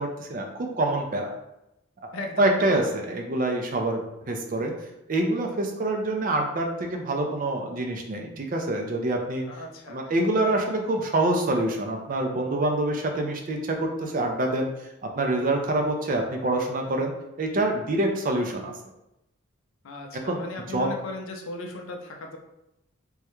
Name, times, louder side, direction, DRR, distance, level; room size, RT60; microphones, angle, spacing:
voice 1, 0.0-1.3 2.1-4.0 4.3-4.7 5.1-9.5 9.9-17.1 17.4-18.7 20.1-20.4 20.7-20.9, right 2 dB, 40° right, 2 dB, 0.4 m, -26 dB
voice 2, 2.1-2.7 9.5-10.1 19.8-22.4, left 2 dB, 75° left, 3 dB, 0.5 m, -37 dB
3.5 x 2.1 x 2.9 m, 0.87 s
head